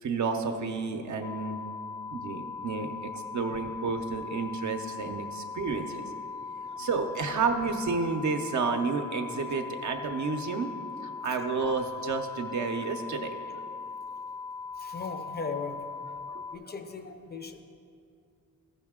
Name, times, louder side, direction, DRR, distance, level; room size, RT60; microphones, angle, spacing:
voice 1, 0.0-1.6 2.1-6.1 6.6-10.7 11.0-13.3 16.3-16.4, right 4 dB, 60° right, 4 dB, 0.6 m, -31 dB
sound 1, 1.2-16.6, left 5 dB, 85° left, 0.5 m, -40 dB
voice 2, 14.8-15.8 16.5-17.6, left 4 dB, 30° left, 7 dB, 0.5 m, -37 dB
13.5 x 5.6 x 3.6 m, 2.5 s
wide cardioid pair, 140°, 33 cm